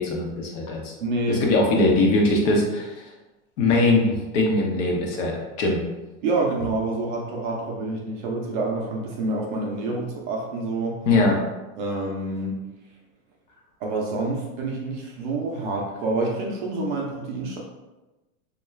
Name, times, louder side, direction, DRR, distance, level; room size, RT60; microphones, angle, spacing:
voice 1, 0.0-0.9 1.3-3.1 3.6-5.8 11.1-11.4, left 2 dB, 60° left, -1 dB, 0.8 m, -21 dB
voice 2, 1.0-1.7 6.2-11.0 11.8-12.6 13.8-17.6, right 2 dB, 40° right, -1 dB, 0.4 m, -27 dB
2.3 x 2.3 x 3.1 m, 1.1 s
supercardioid pair, 150°, 42 cm